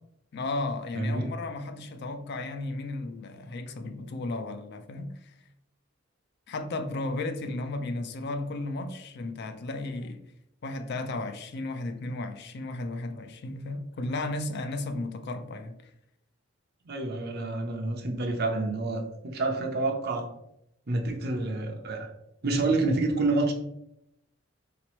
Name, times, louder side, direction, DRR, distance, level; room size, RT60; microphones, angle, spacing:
voice 1, 0.3-5.3 6.5-10.2 10.6-15.9, left 2 dB, 55° left, 0.4 m, -34 dB
voice 2, 0.9-1.3 16.9-20.2 20.9-22.1 22.4-23.5, right 2 dB, 55° right, 0.7 m, -28 dB
4.0 x 2.9 x 3.0 m
head